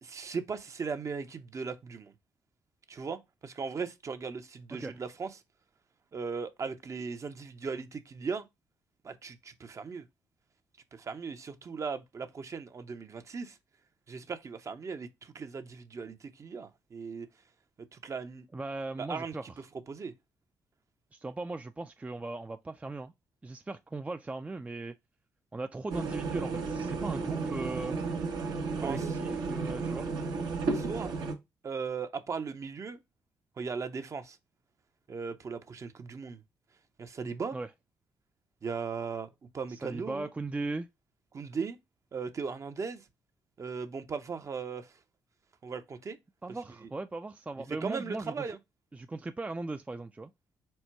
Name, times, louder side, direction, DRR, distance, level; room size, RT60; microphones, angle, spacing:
voice 1, 0.0-2.1 2.9-5.4 6.1-8.4 9.0-10.0 10.9-13.6 14.1-17.3 17.9-18.5 19.0-20.1 28.8-29.1 30.7-31.1 31.6-33.0 33.6-34.4 35.1-36.4 37.0-37.6 38.6-40.3 41.3-41.8 42.1-43.0 43.6-44.9 45.6-46.2 47.8-48.6, right 5 dB, 45° right, 0.7 m, -38 dB
voice 2, 18.5-19.4 21.1-23.1 23.4-25.0 25.5-28.0 28.7-30.1 37.5-37.7 39.7-40.9 46.4-48.4 48.9-50.3, right 3 dB, 20° right, 0.4 m, -38 dB
sound 1, 25.9-31.3, right 4 dB, 70° right, 1.0 m, -33 dB
4.3 x 2.2 x 4.4 m
supercardioid pair, 60°, 7 cm